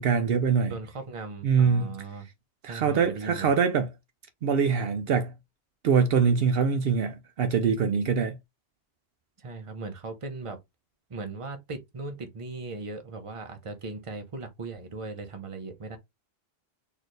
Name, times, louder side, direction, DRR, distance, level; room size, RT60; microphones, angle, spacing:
voice 1, 0.0-0.7 1.4-1.9 2.6-3.9 4.4-5.3 5.8-8.4, right 6 dB, 70° right, 0.8 m, -24 dB
voice 2, 0.6-2.3 2.7-3.5 9.4-10.6 11.1-16.0, right 3 dB, 35° right, 0.9 m, -38 dB
4.2 x 2.7 x 3.1 m
omnidirectional pair, 1.0 m